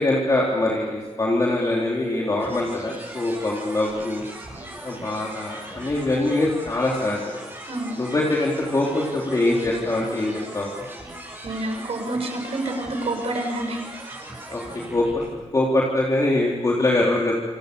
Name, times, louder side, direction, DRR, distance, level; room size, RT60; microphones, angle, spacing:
voice 1, 0.0-4.2 4.8-7.3 8.0-10.7 14.5-14.6 14.9-15.2 15.5-17.4, left 2 dB, 30° left, -3 dB, 3.7 m, -23 dB
sound 1, 2.4-15.3, right 1 dB, 20° right, 7.7 m, -39 dB
voice 2, 11.4-14.2, right 2 dB, 60° right, 4 dB, 6.6 m, -28 dB
28.5 x 27.5 x 7.0 m, 1.2 s
wide cardioid pair, 175°, 12 cm